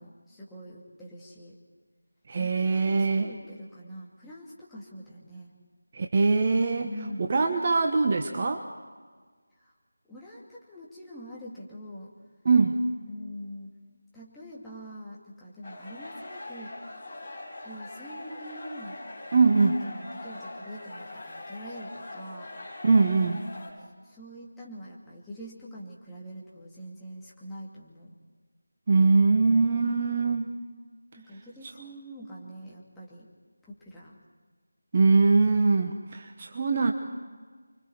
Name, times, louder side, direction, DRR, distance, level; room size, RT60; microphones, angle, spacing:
voice 1, 0.0-1.6 2.4-5.5 6.8-7.3 9.6-9.7 10.1-12.1 13.1-13.7 14.1-16.8 17.6-19.0 19.5-22.5 24.0-28.2 29.8-30.4 31.2-33.3 33.6-34.2 34.9-35.5, equal, 5° left, -8 dB, 2.6 m, -44 dB
voice 2, 2.3-3.3 5.9-6.9 7.3-8.6 12.4-12.8 19.3-19.8 22.8-23.4 28.9-30.5 34.9-36.9, right 4 dB, 30° right, 4 dB, 1.3 m, -22 dB
sound 1, 15.6-23.7, left 2 dB, 25° left, 6.0 m, -42 dB
29.5 x 23.5 x 4.7 m, 1.5 s
figure-of-eight pair, 165°, 0 cm